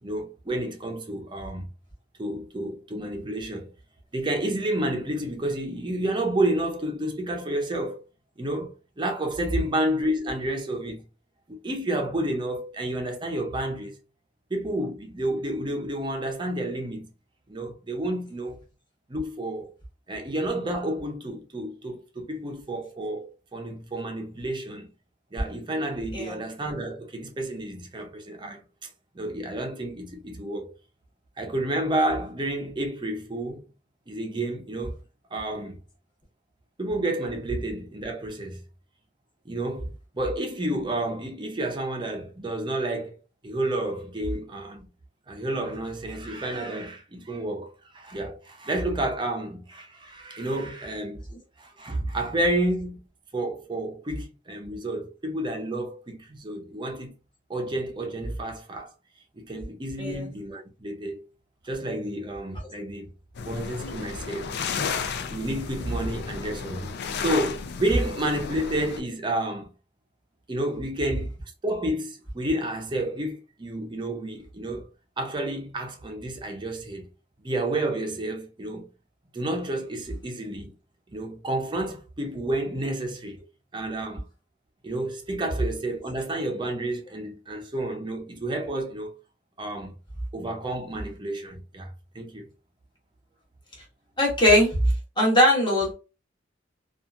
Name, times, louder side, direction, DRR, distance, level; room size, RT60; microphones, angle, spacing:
voice 1, 0.0-1.7 2.2-3.7 4.1-8.0 8.4-11.0 11.5-14.0 14.5-17.1 17.5-18.6 19.1-19.7 20.1-24.9 25.3-28.9 29.1-30.7 31.4-33.6 34.1-34.9 35.3-35.8 36.8-38.6 39.5-43.1 43.4-44.9 45.3-51.2 51.6-53.0 53.3-57.1 57.5-58.9 59.4-61.2 61.6-63.1 63.4-64.5 65.1-69.7 70.5-71.3 71.6-74.9 75.2-77.1 77.4-78.9 79.3-80.7 81.1-83.4 83.7-84.2 84.8-89.1 89.6-89.9 90.3-92.5, right 1 dB, 25° right, 0.5 m, -30 dB
sound 1, 63.3-69.0, left 5 dB, 55° left, 0.4 m, -33 dB
voice 2, 94.2-94.8 95.2-95.9, left 1 dB, 25° left, 1.1 m, -20 dB
2.8 x 2.4 x 2.4 m
head